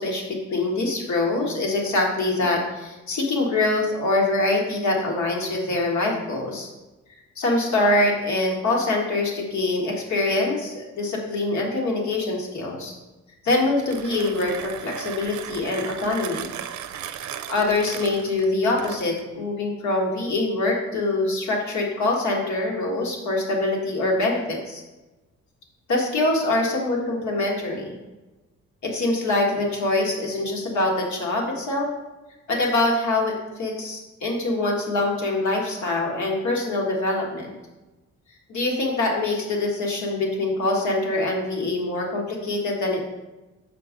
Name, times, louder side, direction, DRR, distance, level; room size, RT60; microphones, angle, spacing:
voice 1, 0.0-6.7 7.4-12.9 13.4-16.5 17.5-24.8 25.9-28.0 28.8-31.9 32.5-37.5 38.5-43.0, left 2 dB, 70° left, -1 dB, 1.7 m, -24 dB
Mechanisms, 13.7-19.3, right 10 dB, 70° right, 0.5 m, -36 dB
6.3 x 4.5 x 5.1 m, 1.1 s
cardioid pair, 85°, 30 cm